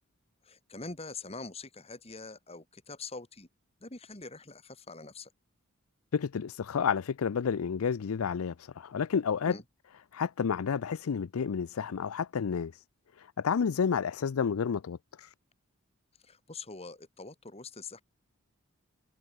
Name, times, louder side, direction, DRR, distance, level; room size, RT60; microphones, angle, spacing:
voice 1, 0.4-3.5 3.8-5.3 9.4-9.6 16.2-18.0, left 3 dB, 30° left, 2.6 m, -44 dB
voice 2, 6.1-9.6 10.1-12.7 13.2-15.3, left 6 dB, 85° left, 0.5 m, -30 dB
head